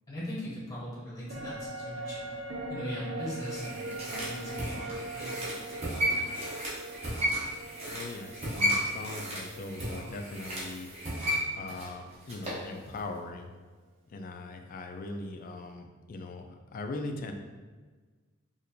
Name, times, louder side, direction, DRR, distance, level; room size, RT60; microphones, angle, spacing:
voice 1, 0.1-2.3 2.7-6.4, equal, 15° left, -6 dB, 0.8 m, -40 dB
sound 1, 1.3-10.8 11.1-11.2, right 2 dB, 60° right, 0.5 m, -41 dB
sound 2, 3.2-12.7 13.0-13.1, equal, 30° right, 0.9 m, -34 dB
voice 2, 7.8-10.9 11.5-13.6 14.1-17.3, left 2 dB, 40° left, 5 dB, 0.3 m, -40 dB
4.2 x 2.5 x 2.6 m, 1.4 s
head